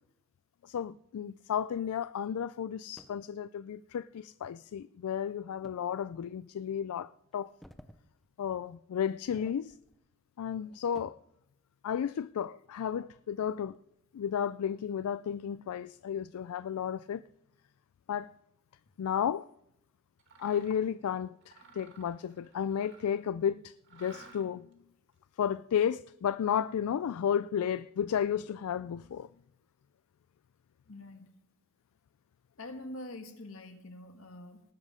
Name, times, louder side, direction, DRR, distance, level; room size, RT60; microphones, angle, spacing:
voice 1, 0.6-7.5 8.4-9.7 10.4-11.2 11.8-13.8 14.1-17.2 18.1-18.3 19.0-19.5 20.4-24.7 25.4-29.3, left 8 dB, 80° left, 0.3 m, -33 dB
sound 1, 3.0-3.3 5.6-5.8 6.4-6.5 7.3-8.0 8.4-8.6 9.1-10.0 10.4-11.3 12.9-14.0 14.5-14.6 15.3-15.6, equal, ahead, 0.6 m, -57 dB
Mechanisms, 20.2-20.9 21.4-23.3 23.8-24.7, right 4 dB, 55° right, 2.0 m, -55 dB
voice 2, 30.9-31.3 32.6-34.6, left 1 dB, 65° left, 1.6 m, -45 dB
19.0 x 7.4 x 5.0 m
head